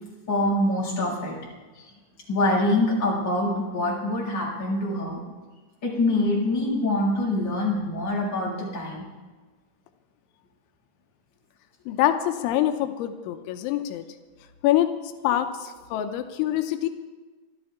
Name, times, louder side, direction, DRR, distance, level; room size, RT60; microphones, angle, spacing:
voice 1, 0.3-1.4 2.3-5.2 5.8-9.0, left 1 dB, 25° left, -5 dB, 6.1 m, -25 dB
voice 2, 11.9-14.1 14.6-15.0 15.2-16.9, left 12 dB, 90° left, 7 dB, 3.2 m, -25 dB
26.5 x 12.5 x 3.6 m, 1.3 s
omnidirectional pair, 5.3 m